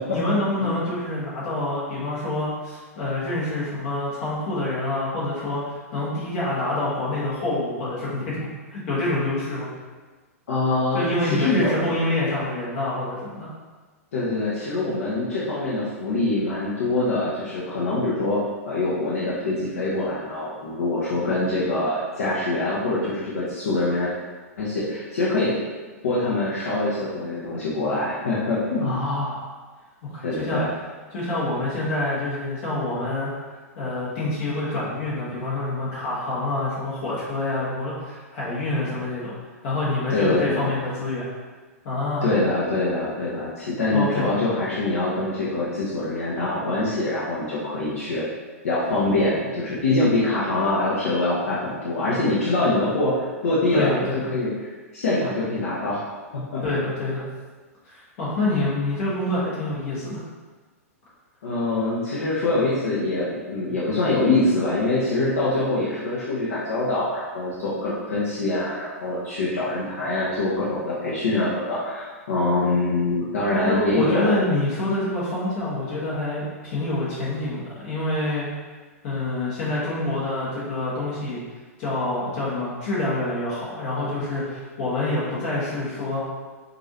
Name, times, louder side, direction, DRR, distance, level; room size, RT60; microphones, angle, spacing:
voice 1, 0.1-8.4 8.7-9.7 10.9-13.5 28.8-29.5 30.0-30.6 31.1-33.3 33.7-39.3 39.6-41.2 41.8-42.3 43.9-44.3 53.7-54.2 56.6-57.2 57.8-60.2 73.5-78.4 79.0-81.4 81.8-86.3, left 2 dB, 45° left, -8 dB, 1.3 m, -26 dB
voice 2, 10.5-11.9 14.1-24.1 24.6-25.5 26.0-29.0 30.2-30.7 40.1-40.7 42.2-48.2 48.6-54.5 54.9-56.0 56.3-56.6 61.4-74.4, left 2 dB, 65° left, -7 dB, 0.9 m, -24 dB
4.7 x 2.6 x 2.8 m, 1.3 s
figure-of-eight pair, 105°, 8 cm